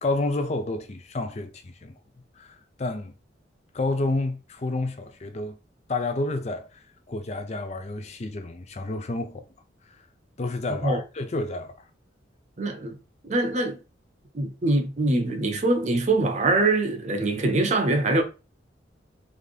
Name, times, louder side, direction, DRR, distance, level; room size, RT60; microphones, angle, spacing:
voice 1, 0.0-1.9 2.4-3.1 3.7-5.6 5.9-9.5 9.9-10.0 10.4-11.8, left 2 dB, 35° left, 0.5 m, -30 dB
voice 2, 12.6-13.0 13.2-13.8 14.3-18.2, right 2 dB, 40° right, 0.6 m, -23 dB
3.7 x 2.7 x 3.3 m
head